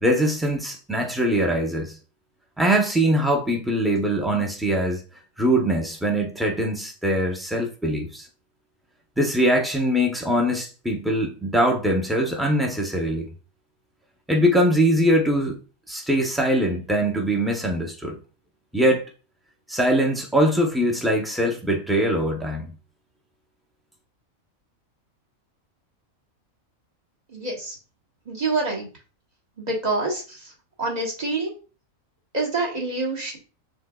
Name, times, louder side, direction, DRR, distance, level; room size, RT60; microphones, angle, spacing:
voice 1, 0.0-2.0 2.6-5.0 5.4-8.3 9.2-13.3 14.3-15.6 15.9-18.2 18.7-19.0 19.7-22.7, equal, ahead, 0.6 m, -22 dB
voice 2, 27.3-27.7 28.3-28.9 29.6-30.5 30.8-31.5 32.3-33.4, right 3 dB, 30° right, 1.4 m, -26 dB
6.3 x 3.5 x 2.3 m
omnidirectional pair, 1.4 m